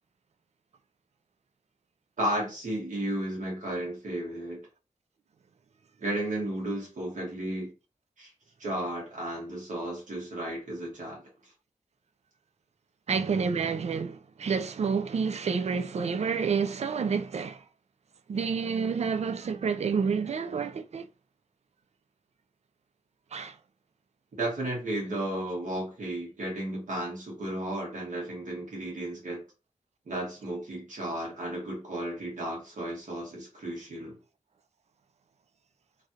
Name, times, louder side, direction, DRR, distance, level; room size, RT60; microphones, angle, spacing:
voice 1, 2.2-4.6 6.0-7.7 8.2-8.3 8.6-11.3 24.4-29.4 30.1-34.2, right 1 dB, 80° right, 1.5 m, -33 dB
voice 2, 13.1-17.6 18.3-21.1 23.3-23.6, right 5 dB, 60° right, 0.4 m, -29 dB
3.1 x 2.5 x 2.7 m
wide cardioid pair, 80°, 13 cm